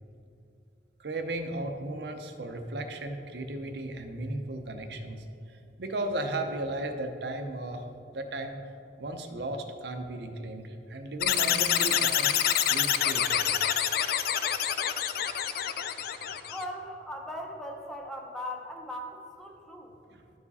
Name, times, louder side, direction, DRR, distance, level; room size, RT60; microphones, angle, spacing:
voice 1, 1.0-5.3 5.8-7.8 8.1-8.6 9.0-12.3 12.7-13.4 20.1-20.2, right 2 dB, 65° right, 6 dB, 0.7 m, -35 dB
sound 1, 11.2-16.6, left 10 dB, 55° left, 0.4 m, -26 dB
voice 2, 16.5-19.9, left 1 dB, 5° left, 1 dB, 0.7 m, -39 dB
11.5 x 4.7 x 4.1 m, 2.7 s
head